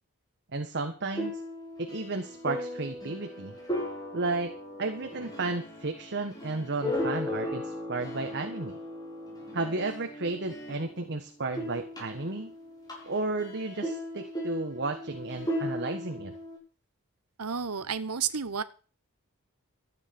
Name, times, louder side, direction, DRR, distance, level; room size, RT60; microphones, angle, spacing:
voice 1, 0.5-1.4 1.8-3.5 4.1-8.8 9.5-12.5 13.0-16.3, right 3 dB, 50° right, 6 dB, 1.4 m, -33 dB
sound 1, 1.1-11.1 11.4-16.6, left 1 dB, 20° left, 6.5 m, -37 dB
voice 2, 17.4-18.6, right 6 dB, 85° right, 14 dB, 1.1 m, -31 dB
13.5 x 9.2 x 6.0 m, 0.38 s
head